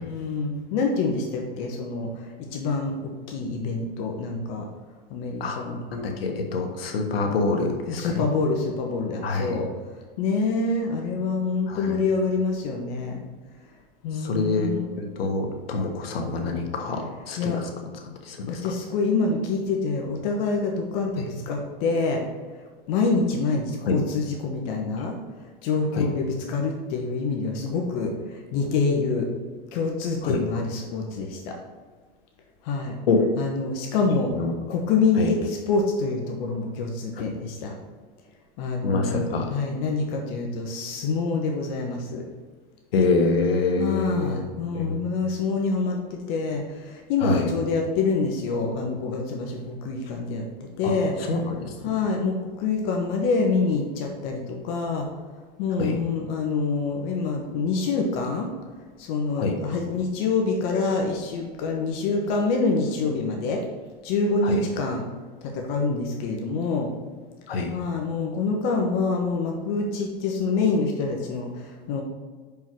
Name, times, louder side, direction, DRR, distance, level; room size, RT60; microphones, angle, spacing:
voice 1, 0.0-4.7 5.1-5.8 7.9-9.7 10.2-13.3 14.0-14.9 17.4-17.6 18.5-22.2 22.9-25.2 25.6-29.3 29.7-31.6 32.6-33.0 33.4-34.3 34.7-37.7 38.6-42.2 43.8-51.1 51.8-55.1 55.6-58.5 59.0-63.6 64.0-65.0 65.4-66.9 67.7-72.0, left 4 dB, 50° left, 2 dB, 1.2 m, -26 dB
voice 2, 5.9-8.2 9.2-9.6 11.7-12.0 14.1-18.7 21.2-21.3 23.9-24.0 25.0-25.1 25.9-26.1 30.2-30.4 33.1-33.3 34.3-34.5 35.1-35.3 37.1-37.2 38.8-39.5 42.9-44.4 44.7-45.0 47.2-47.5 50.8-51.8 55.8-56.0 59.4-59.6 64.4-64.7 67.5-67.8, left 3 dB, 85° left, 4 dB, 1.3 m, -26 dB
6.0 x 5.4 x 4.6 m, 1.4 s
supercardioid pair, 130°, 29 cm